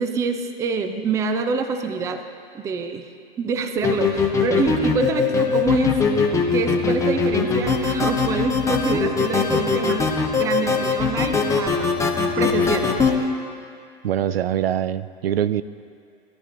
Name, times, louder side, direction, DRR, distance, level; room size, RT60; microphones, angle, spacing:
voice 1, 0.0-2.2 2.5-3.1 3.4-10.1 10.3-12.0 12.4-12.9, right 5 dB, 10° right, 8 dB, 0.4 m, -26 dB
sound 1, 3.8-13.2, left 5 dB, 10° left, 0.8 m, -21 dB
voice 2, 14.0-15.6, right 10 dB, 80° right, 15 dB, 0.5 m, -23 dB
16.5 x 11.0 x 2.6 m, 2.3 s
hypercardioid pair, 110°, 29 cm